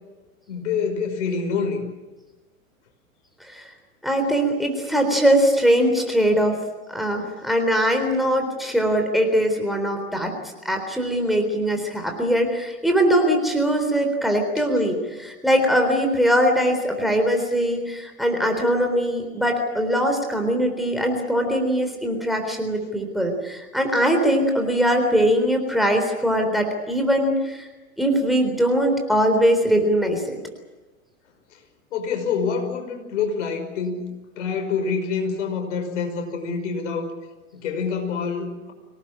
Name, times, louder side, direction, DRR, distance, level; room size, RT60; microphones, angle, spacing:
voice 1, 0.5-1.9 31.9-34.0 34.4-37.1 37.5-38.7, left 5 dB, 60° left, 5 dB, 5.8 m, -26 dB
voice 2, 3.4-3.7 4.0-6.6 6.9-27.7 28.0-30.4, equal, ahead, 4 dB, 3.8 m, -21 dB
25.0 x 18.5 x 8.8 m, 1.2 s
figure-of-eight pair, 105°, 42 cm